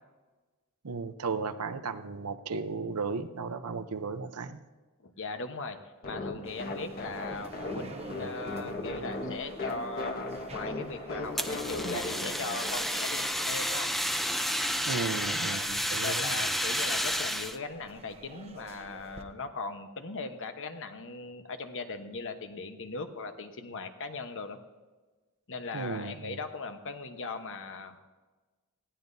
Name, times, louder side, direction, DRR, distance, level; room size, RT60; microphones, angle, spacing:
voice 1, 0.8-4.6 14.9-16.4 25.7-26.4, right 4 dB, 90° right, 10 dB, 0.8 m, -35 dB
voice 2, 5.0-5.8 6.0-13.9 15.4-15.7 16.0-24.6 25.5-28.0, left 3 dB, 60° left, 7 dB, 1.1 m, -39 dB
sound 1, 6.0-13.5, left 2 dB, 45° left, 1.5 m, -38 dB
sound 2, 6.4-19.2, right 2 dB, 30° right, 0.9 m, -51 dB
Fire, 11.4-17.6, equal, ahead, 0.6 m, -31 dB
19.5 x 15.5 x 2.7 m, 1.3 s
head